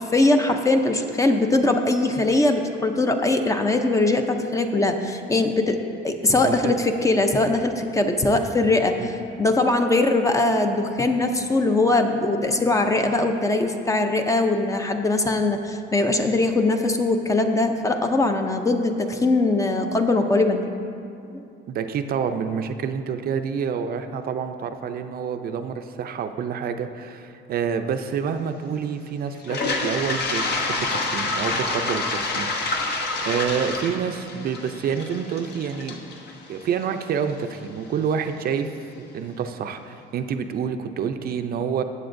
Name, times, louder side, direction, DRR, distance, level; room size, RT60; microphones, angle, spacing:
voice 1, 0.0-5.8 6.0-20.7 21.3-21.4, left 2 dB, 15° left, 5 dB, 0.5 m, -21 dB
voice 2, 6.3-6.7 9.0-9.1 21.7-32.5 32.8-36.0 36.5-38.7 39.0-41.8, right 7 dB, 50° right, 7 dB, 0.5 m, -28 dB
Toilet flush, 29.4-37.3, left 3 dB, 55° left, 1.1 m, -28 dB
14.5 x 7.7 x 2.6 m, 2.5 s
cardioid pair, 130°, 20 cm